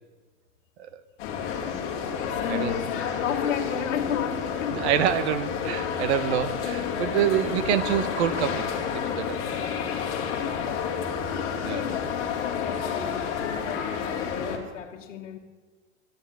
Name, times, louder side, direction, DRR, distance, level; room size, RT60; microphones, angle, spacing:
sound 1, 1.2-14.6, left 7 dB, 30° left, 2.3 m, -30 dB
voice 1, 2.3-4.9 10.0-11.1 11.7-12.1 12.6-15.4, left 8 dB, 65° left, 1.7 m, -33 dB
voice 2, 4.7-8.7 8.9-9.4 11.6-11.8, right 9 dB, 55° right, 1.1 m, -26 dB
12.0 x 11.0 x 8.8 m
supercardioid pair, 165°, 38 cm